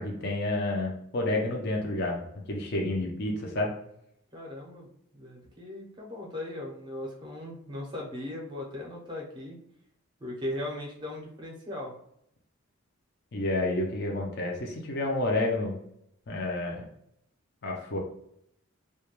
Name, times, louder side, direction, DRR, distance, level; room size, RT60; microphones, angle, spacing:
voice 1, 0.0-3.7 13.3-15.8 16.3-16.9 17.6-18.0, left 2 dB, 50° left, 0 dB, 0.5 m, -30 dB
voice 2, 4.3-4.9 5.1-9.6 10.2-11.9, left 1 dB, 20° right, -1 dB, 0.6 m, -38 dB
2.3 x 2.2 x 2.9 m, 0.72 s
head